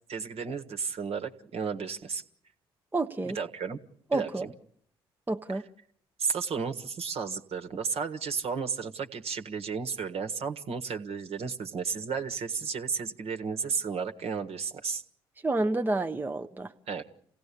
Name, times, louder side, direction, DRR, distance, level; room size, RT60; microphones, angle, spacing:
voice 1, 0.1-2.2 3.2-3.8 4.1-4.5 5.5-5.6 6.2-15.0 16.9-17.0, right 5 dB, 50° right, 6 dB, 1.6 m, -33 dB
voice 2, 2.9-3.4 4.1-4.4 5.3-5.6 15.4-16.7, right 2 dB, 15° right, 5 dB, 0.9 m, -29 dB
28.0 x 17.0 x 8.6 m, 0.70 s
figure-of-eight pair, 50°, 13 cm